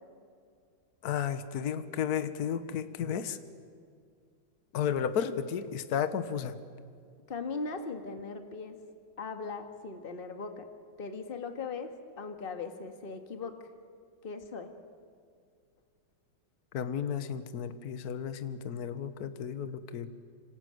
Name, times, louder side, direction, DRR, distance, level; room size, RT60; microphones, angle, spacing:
voice 1, 1.0-3.4 4.7-6.6 16.7-20.1, left 8 dB, 55° left, 11 dB, 1.6 m, -33 dB
voice 2, 7.3-8.8 9.2-10.7 11.0-13.5 14.2-14.7, left 4 dB, 30° left, 6 dB, 1.8 m, -39 dB
26.5 x 26.0 x 7.9 m, 2.2 s
omnidirectional pair, 2.2 m